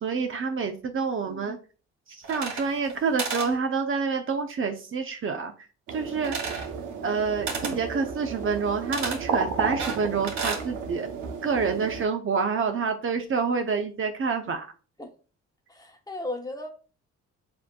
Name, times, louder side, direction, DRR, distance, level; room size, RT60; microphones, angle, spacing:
voice 1, 0.0-1.6 2.1-5.5 5.9-6.4 7.0-11.1 11.4-14.7, right 5 dB, 45° right, 0.7 m, -27 dB
voice 2, 1.3-1.6 15.0-15.1 15.7-16.7, left 2 dB, 10° left, 1.0 m, -36 dB
sound 1, 2.2-2.9 3.2-3.5 6.2-6.7 7.5-7.8 8.9-9.2 9.8-10.7, right 4 dB, 65° right, 2.1 m, -32 dB
sound 2, 5.9-12.1, right 5 dB, 85° right, 0.8 m, -33 dB
7.4 x 2.7 x 2.3 m
cardioid pair, 90°, 30 cm